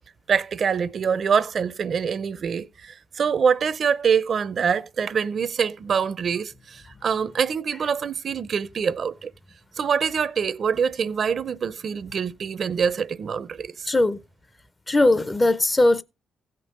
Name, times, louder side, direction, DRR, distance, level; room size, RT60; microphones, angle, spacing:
voice 1, 0.3-9.3 9.8-13.9, right 6 dB, 50° right, 0.6 m, -25 dB
voice 2, 13.9-14.2 14.9-16.0, left 2 dB, 25° left, 0.6 m, -19 dB
15.5 x 5.3 x 5.3 m
cardioid pair, 90°, 0 cm